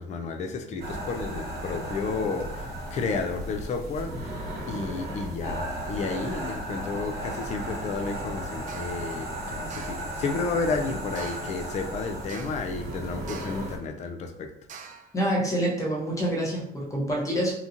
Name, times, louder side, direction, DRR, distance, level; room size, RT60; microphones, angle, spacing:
voice 1, 0.0-14.5, left 4 dB, 45° left, 0.4 m, -32 dB
sound 1, 0.8-13.8, right 1 dB, 70° right, 1.0 m, -35 dB
sound 2, 8.7-9.0 9.7-10.1 11.2-11.6 12.3-12.7 13.3-13.7 14.7-15.1, right 6 dB, 50° right, 0.4 m, -44 dB
voice 2, 15.1-17.5, equal, 20° left, 0.9 m, -26 dB
2.9 x 2.3 x 2.5 m
cardioid pair, 110°, 17 cm